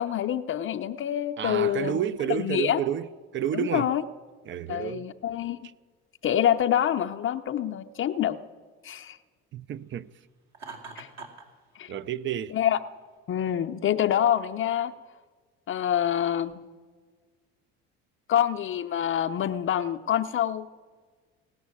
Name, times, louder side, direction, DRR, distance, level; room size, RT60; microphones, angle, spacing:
voice 1, 0.0-2.0 2.3-2.8 3.5-4.0 4.7-5.7 6.2-8.4 8.8-9.2 11.0-11.1 11.8-11.9 12.5-12.8 13.3-14.9 15.7-16.7 18.3-20.7, left 10 dB, 45° left, 0.6 m, -26 dB
voice 2, 1.4-3.9 4.5-5.1 9.5-10.1 11.9-12.6, right 10 dB, 40° right, 0.5 m, -30 dB
Laughter, 10.5-11.5, right 4 dB, 60° right, 2.5 m, -42 dB
17.5 x 6.2 x 9.5 m
supercardioid pair, 75°, 30 cm